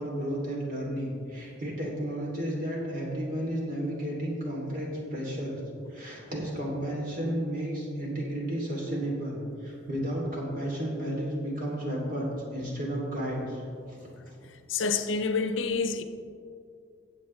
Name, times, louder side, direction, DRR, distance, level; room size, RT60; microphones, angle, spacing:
voice 1, 0.0-5.6 5.9-13.6 13.9-14.4, equal, 45° right, 2.8 m, -33 dB
voice 2, 14.7-16.0, left 4 dB, 90° left, 0.7 m, -27 dB
15.5 x 7.9 x 3.2 m
head